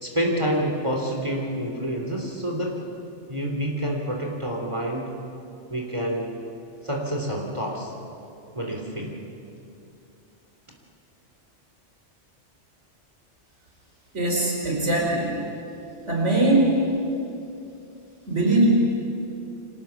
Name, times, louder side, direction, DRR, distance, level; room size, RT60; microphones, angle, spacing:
voice 1, 0.0-2.8 3.3-5.1 5.7-6.3 6.8-7.9 8.5-9.2, equal, 25° right, 0 dB, 3.1 m, -28 dB
voice 2, 14.1-15.3 16.1-16.7 18.3-18.7, right 2 dB, 85° right, -1 dB, 4.7 m, -21 dB
29.5 x 25.5 x 7.1 m, 2.7 s
omnidirectional pair, 1.2 m